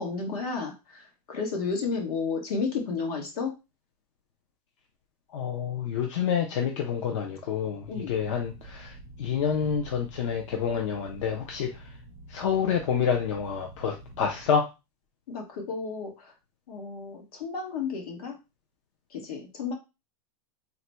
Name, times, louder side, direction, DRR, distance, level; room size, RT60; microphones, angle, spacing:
voice 1, 0.0-3.5 7.9-8.1 15.3-16.1 16.7-18.4 19.1-19.7, left 4 dB, 70° left, 2 dB, 1.5 m, -32 dB
voice 2, 5.3-11.9 12.3-14.7, left 7 dB, 55° left, 2 dB, 0.6 m, -28 dB
sound 1, 7.8-14.5, right 2 dB, 20° right, 0.3 m, -48 dB
3.9 x 2.2 x 4.3 m, 0.26 s
supercardioid pair, 180°, 19 cm